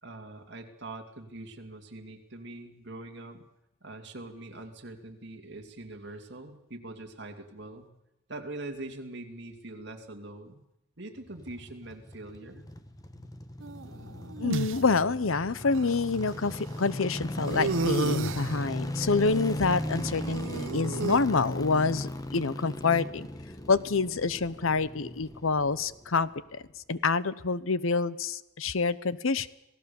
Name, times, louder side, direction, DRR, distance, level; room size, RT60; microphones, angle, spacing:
voice 1, 0.0-3.4 3.8-7.9 8.3-10.6 11.0-12.6, right 2 dB, 55° right, 4 dB, 2.5 m, -43 dB
sound 1, 11.2-26.4 26.6-26.7, left 1 dB, 15° left, 1.1 m, -37 dB
sound 2, 13.6-14.8 15.7-15.8 17.5-18.6 19.9-21.2, right 3 dB, 70° right, 0.7 m, -32 dB
voice 2, 14.4-23.3 23.7-26.6 26.9-29.5, left 4 dB, 75° left, 16 dB, 0.8 m, -27 dB
sound 3, 17.5-17.9 20.5-21.0 21.4-21.5, right 1 dB, 55° left, 7.6 m, -46 dB
27.0 x 17.5 x 7.1 m, 0.91 s
head